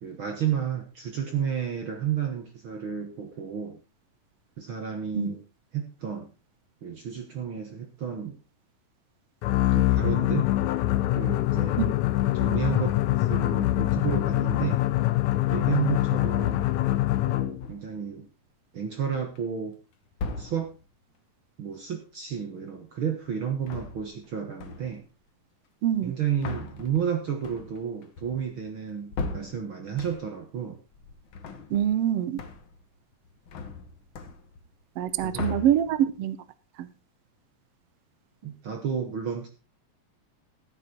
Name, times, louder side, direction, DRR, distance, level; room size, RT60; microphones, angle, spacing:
voice 1, 0.0-3.8 4.6-5.4 5.7-6.3 6.8-8.4 9.7-10.5 11.1-11.9 12.3-14.8 15.5-16.7 17.3-18.3 18.7-19.8 20.4-20.7 21.6-25.1 26.0-30.8 35.2-35.6 38.4-39.5, right 8 dB, 55° right, 4 dB, 1.5 m, -31 dB
sound 1, 9.4-17.7, left 15 dB, 75° left, 1.7 m, -24 dB
sound 2, 17.6-18.1 18.8-19.4 20.1-20.9 23.5-24.3 24.6-25.1 25.9-30.5 30.9-32.1 32.4-32.9 33.1-34.7 35.0-36.2, left 4 dB, 55° left, 1.5 m, -38 dB
voice 2, 25.8-26.1 31.7-32.4 35.0-36.4 36.8-36.9, right 10 dB, 75° right, 15 dB, 1.4 m, -25 dB
14.5 x 8.5 x 4.3 m, 0.31 s
omnidirectional pair, 4.0 m